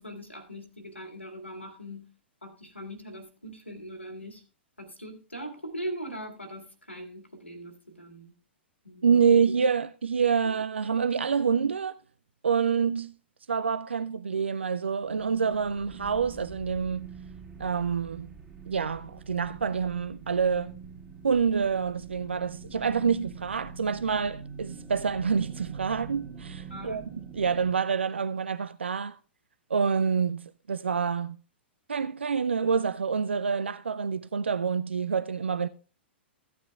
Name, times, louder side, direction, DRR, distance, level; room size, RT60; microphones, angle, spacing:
voice 1, 0.0-2.0 2.4-4.4 4.8-8.3 8.8-9.4 26.7-27.2, right 1 dB, 90° left, 2.2 m, -41 dB
voice 2, 9.0-12.0 12.4-13.1 13.5-17.1 17.6-18.3 18.7-20.8 21.2-27.0 27.3-29.2 29.7-31.4 31.9-35.7, right 6 dB, 75° right, 0.4 m, -27 dB
sound 1, 15.0-27.7, right 6 dB, 10° right, 1.9 m, -45 dB
16.0 x 9.5 x 2.4 m
figure-of-eight pair, 105°, 6 cm